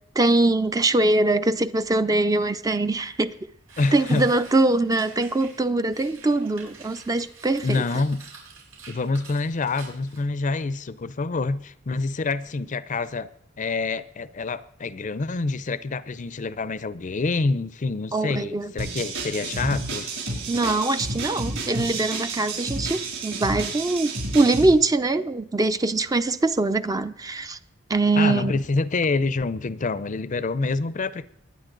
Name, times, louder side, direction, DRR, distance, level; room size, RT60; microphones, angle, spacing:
voice 1, 0.2-3.3 3.9-7.8 18.1-18.7 20.5-27.6 27.9-28.5, right 2 dB, 20° right, 0.5 m, -22 dB
sound 1, 3.0-3.2 3.7-10.2, right 5 dB, 90° right, 5.0 m, -47 dB
voice 2, 3.8-4.3 7.6-8.2 8.9-13.3 13.6-20.1 28.2-31.3, left 3 dB, 40° left, 0.5 m, -27 dB
sound 2, 18.8-24.7, right 2 dB, 70° right, 6.4 m, -31 dB
21.0 x 9.7 x 3.9 m
head